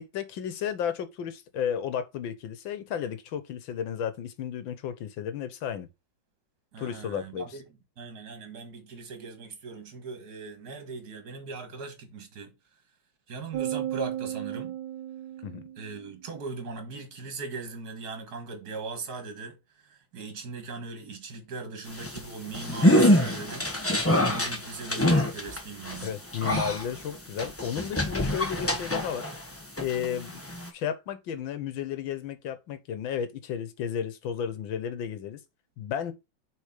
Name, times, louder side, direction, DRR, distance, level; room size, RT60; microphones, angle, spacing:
voice 1, 0.0-5.9 6.8-7.6 15.4-15.6 26.0-29.3 29.8-30.4 30.7-35.4 35.8-36.1, left 8 dB, 80° left, 1.7 m, -33 dB
voice 2, 6.7-7.6 8.0-12.5 13.3-14.8 15.8-19.6 19.8-23.7 24.2-26.1, right 4 dB, 55° right, 2.2 m, -39 dB
sound 1, 13.5-16.1, right 12 dB, 70° right, 1.6 m, -34 dB
sound 2, 21.9-29.5 29.8-30.7, left 1 dB, 10° left, 0.9 m, -25 dB
6.6 x 4.1 x 4.9 m
omnidirectional pair, 2.1 m